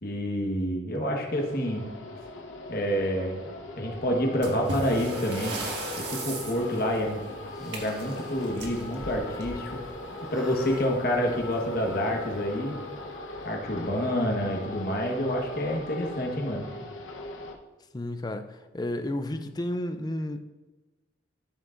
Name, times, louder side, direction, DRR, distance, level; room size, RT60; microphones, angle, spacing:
voice 1, 0.0-1.9 2.7-3.4 3.8-5.6 6.0-7.2 7.6-9.8 10.3-12.8 13.4-16.7, equal, 50° left, 1.3 m, -28 dB
sound 1, 1.3-17.5, left 2 dB, 85° left, 1.0 m, -39 dB
sound 2, 4.4-9.8 11.1-11.2 11.5-11.6 12.3-12.4 13.0-13.3, right 2 dB, 65° right, 1.7 m, -37 dB
sound 3, 7.5-10.0 10.3-10.9, equal, ahead, 2.2 m, -45 dB
voice 2, 17.9-20.4, left 1 dB, 20° left, 0.4 m, -32 dB
14.0 x 6.3 x 2.6 m
head